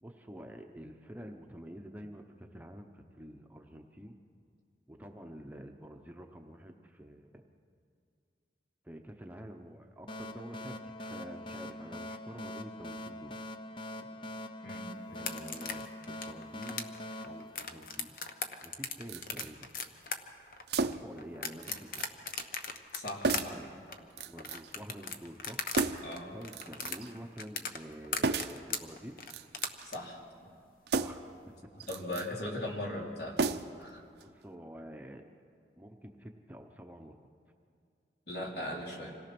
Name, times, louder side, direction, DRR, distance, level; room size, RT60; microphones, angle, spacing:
voice 1, 0.0-4.2 4.9-7.4 8.8-13.4 15.1-18.2 18.6-19.7 20.8-22.0 23.5-23.6 24.3-25.7 26.3-29.2 31.0-31.3 34.2-35.2 35.8-37.3, equal, 10° right, 3 dB, 0.8 m, -48 dB
sound 1, 10.1-18.4, left 1 dB, 30° left, 0.6 m, -43 dB
sound 2, 15.1-25.9 26.1-30.0, left 5 dB, 50° left, 1.0 m, -38 dB
sound 3, 19.1-19.5 20.7-21.2 21.6-22.1 22.4-22.5 23.2-23.6 24.2-24.7 25.7-26.2 26.5-27.1 28.2-28.6 29.2-29.9 30.9-31.3 31.8-32.3 33.4-33.9 34.2-34.3, right 4 dB, 75° right, 0.7 m, -33 dB
voice 2, 22.9-23.6 26.0-26.3 29.8-30.2 31.9-33.4 33.8-34.0 38.3-39.2, left 1 dB, 70° left, -2 dB, 3.6 m, -38 dB
26.5 x 18.0 x 6.1 m, 2.3 s
head